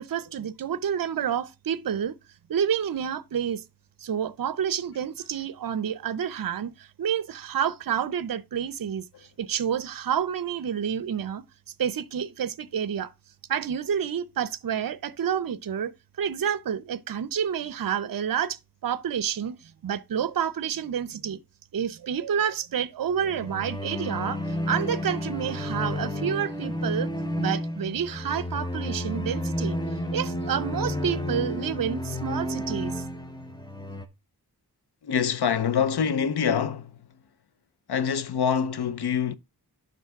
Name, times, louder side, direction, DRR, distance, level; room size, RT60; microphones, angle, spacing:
voice 1, 0.0-2.2 2.5-3.6 4.0-11.4 11.8-13.1 13.5-15.9 16.2-21.4 21.7-27.1 27.4-29.8 30.1-33.0, right 8 dB, 60° right, 0.6 m, -29 dB
sound 1, 23.1-34.1, left 1 dB, 10° left, 0.8 m, -31 dB
voice 2, 35.0-36.9 37.9-39.4, left 7 dB, 80° left, 0.7 m, -25 dB
11.0 x 3.9 x 3.5 m
wide cardioid pair, 110°, 39 cm